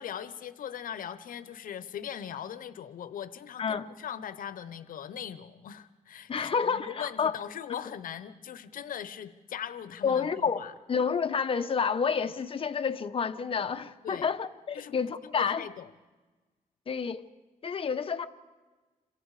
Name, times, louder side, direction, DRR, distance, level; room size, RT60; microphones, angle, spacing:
voice 1, 0.0-10.7 14.0-14.3 14.7-14.9 15.2-15.9, left 9 dB, 80° left, 0.9 m, -40 dB
voice 2, 6.3-7.3 10.0-10.6 10.9-15.7 16.9-17.2 17.6-18.3, left 6 dB, 40° left, 1.0 m, -29 dB
28.0 x 25.0 x 4.9 m
cardioid pair, 120°, 14 cm